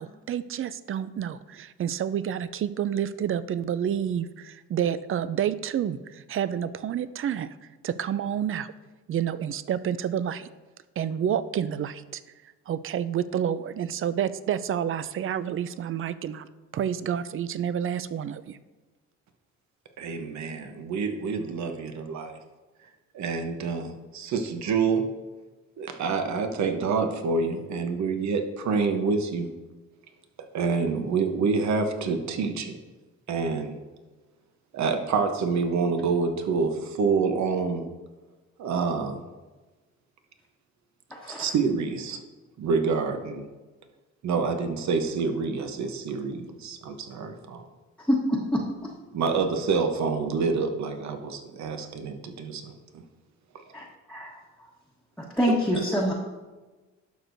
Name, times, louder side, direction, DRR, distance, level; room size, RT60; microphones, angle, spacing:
voice 1, 0.0-7.5 7.8-8.7 9.1-10.5 11.0-12.2 12.7-16.5 16.7-18.6, right 9 dB, 45° right, 15 dB, 0.4 m, -29 dB
voice 2, 20.0-22.4 23.1-25.1 25.8-29.5 30.5-32.8 33.3-33.8 34.7-37.9 38.6-39.2 41.3-42.2 42.6-43.4 44.2-47.7 49.1-53.0, right 4 dB, 65° right, 6 dB, 1.0 m, -27 dB
voice 3, 41.1-41.5 48.1-48.6 53.7-54.4 55.4-56.1, equal, 5° left, -5 dB, 1.2 m, -25 dB
11.5 x 6.3 x 2.6 m, 1.2 s
cardioid pair, 90°, 30 cm